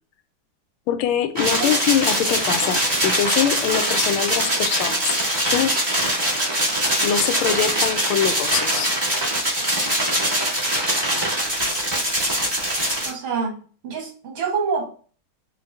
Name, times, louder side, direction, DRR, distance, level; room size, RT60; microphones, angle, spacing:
voice 1, 0.9-5.1 5.5-5.8 7.0-8.9, left 9 dB, 85° left, 10 dB, 1.4 m, -23 dB
sound 1, 1.4-13.1, right 1 dB, 15° right, 1.3 m, -22 dB
voice 2, 13.0-14.9, right 5 dB, 75° right, 1 dB, 2.0 m, -27 dB
5.7 x 2.6 x 2.7 m, 0.40 s
omnidirectional pair, 2.2 m